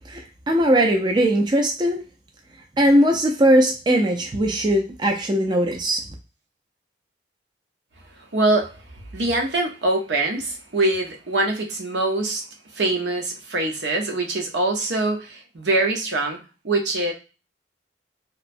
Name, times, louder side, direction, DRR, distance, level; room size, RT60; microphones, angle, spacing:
voice 1, 0.1-2.0 2.8-6.0, equal, 25° right, 0.4 m, -19 dB
voice 2, 8.2-8.8 9.1-12.4 12.7-16.4 16.6-17.1, right 2 dB, 80° right, 0.8 m, -23 dB
2.9 x 2.0 x 2.6 m
head